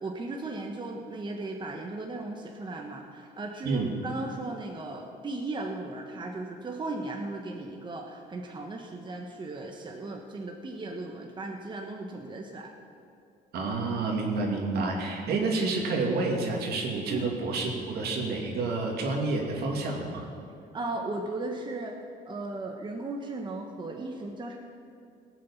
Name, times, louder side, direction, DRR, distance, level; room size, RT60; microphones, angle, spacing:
voice 1, 0.0-12.7 15.3-15.4 17.1-17.3 20.7-22.0 22.3-24.6, right 2 dB, 25° right, 2 dB, 1.2 m, -36 dB
voice 2, 13.5-20.3, right 3 dB, 70° right, 1 dB, 2.6 m, -29 dB
18.0 x 7.6 x 7.3 m, 2.4 s
cardioid pair, 110°, 17 cm